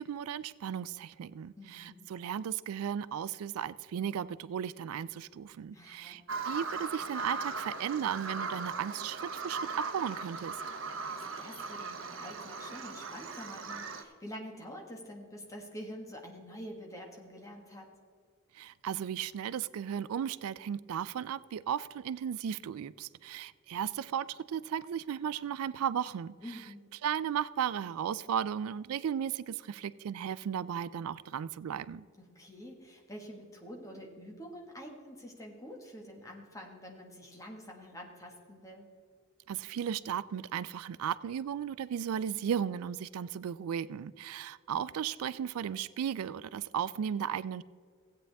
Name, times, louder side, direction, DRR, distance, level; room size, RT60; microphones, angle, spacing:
voice 1, 0.0-10.6 18.5-26.3 27.0-32.0 39.5-47.6, right 8 dB, 85° right, 18 dB, 0.3 m, -35 dB
voice 2, 1.6-2.1 5.7-6.2 11.1-17.9 26.4-26.9 32.2-38.9, equal, 15° left, 0 dB, 1.6 m, -47 dB
Bird vocalization bird call bird song, 6.3-14.0, right 4 dB, 65° right, 0.9 m, -38 dB
16.0 x 8.7 x 3.5 m, 2.1 s
head